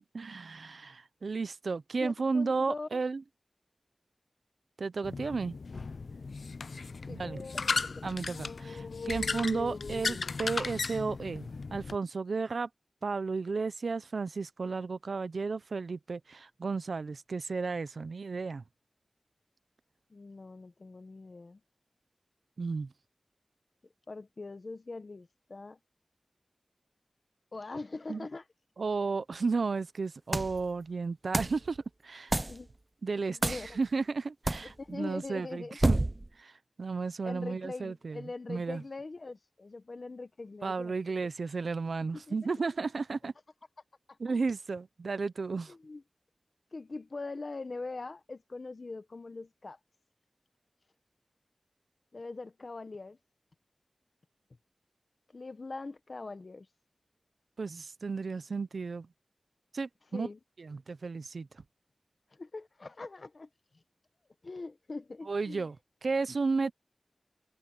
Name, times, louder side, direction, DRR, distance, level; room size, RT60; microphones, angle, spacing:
voice 1, 0.1-3.2 4.8-5.6 7.1-7.4 8.0-12.7 13.0-18.6 22.6-22.9 28.1-28.3 28.8-31.8 32.0-32.4 33.0-36.0 36.4-36.5 36.8-38.2 38.5-38.8 40.6-43.3 44.2-45.7 57.6-59.1 59.7-60.3 60.6-61.5 65.3-65.8 66.0-66.7, right 4 dB, 85° right, 0.7 m, -33 dB
voice 2, 2.0-3.0 7.0-8.2 20.1-21.6 24.1-25.8 27.5-28.4 32.5-32.7 33.3-33.8 34.6-35.8 37.2-40.9 42.0-42.6 44.1-44.2 45.7-46.0 46.7-49.8 52.1-53.2 55.3-56.7 60.1-60.4 62.3-63.5 64.4-65.7, left 3 dB, 60° left, 1.3 m, -42 dB
sound 1, 5.0-12.0, left 4 dB, 80° left, 0.4 m, -36 dB
sound 2, 30.3-30.6 31.3-31.6 32.3-32.6 33.4-33.7 34.5-34.7 35.8-36.3, right 2 dB, 30° right, 0.4 m, -28 dB
wide cardioid pair, 75°, 0 cm